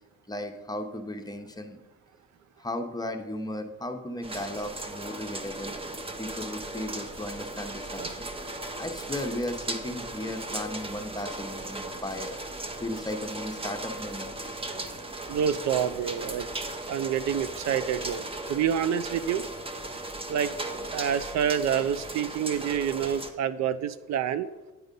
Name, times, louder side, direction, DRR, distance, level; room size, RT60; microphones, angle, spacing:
voice 1, 0.3-1.8 2.6-5.7 6.2-8.3 8.8-12.3 12.8-14.3, left 1 dB, 15° left, 5 dB, 0.8 m, -35 dB
sound 1, 4.2-23.3, right 2 dB, 20° right, 0.7 m, -37 dB
voice 2, 15.3-16.5 16.9-19.4 20.3-20.5 20.9-24.5, right 8 dB, 65° right, 12 dB, 0.4 m, -27 dB
9.1 x 4.0 x 5.2 m, 1.1 s
cardioid pair, 90°, 30 cm